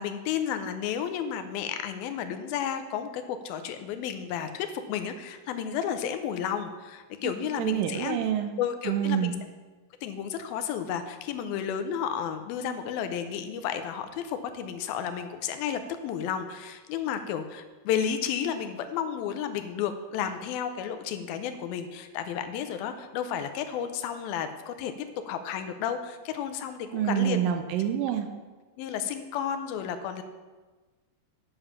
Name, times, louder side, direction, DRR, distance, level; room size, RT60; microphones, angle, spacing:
voice 1, 0.0-8.2 8.6-9.4 10.0-24.9 25.3-27.4 28.8-30.2, left 8 dB, 85° left, 8 dB, 2.5 m, -32 dB
voice 2, 7.6-8.5 8.9-9.4 26.9-28.3, right 10 dB, 80° right, 7 dB, 2.2 m, -27 dB
8.7 x 7.0 x 5.7 m, 1.3 s
omnidirectional pair, 4.3 m